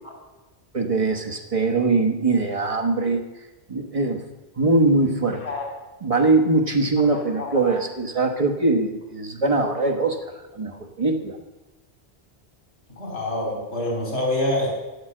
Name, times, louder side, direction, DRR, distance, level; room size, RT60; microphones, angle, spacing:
voice 1, 0.7-3.2 3.7-4.2 4.6-5.4 6.0-10.2 10.5-11.4, right 3 dB, 30° right, 2 dB, 1.3 m, -22 dB
voice 2, 7.4-7.7 12.9-14.7, left 1 dB, 80° left, -3 dB, 3.4 m, -26 dB
9.9 x 8.2 x 7.7 m, 1.1 s
omnidirectional pair, 1.1 m